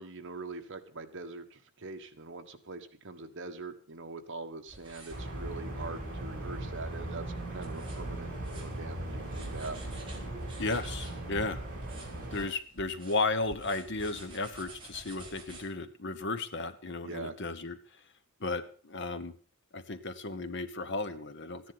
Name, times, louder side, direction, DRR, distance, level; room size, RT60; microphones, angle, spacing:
voice 1, 0.0-7.2 7.5-10.0 17.0-17.3, right 3 dB, 55° right, 6 dB, 1.4 m, -43 dB
sound 1, 4.7-15.6, right 2 dB, 25° right, 4.1 m, -51 dB
sound 2, 5.1-12.5, right 1 dB, 40° right, 4.8 m, -38 dB
voice 2, 10.6-11.6 12.3-17.8 18.4-19.3 19.7-21.7, left 3 dB, 55° left, 11 dB, 1.1 m, -34 dB
14.0 x 10.5 x 5.8 m, 0.42 s
head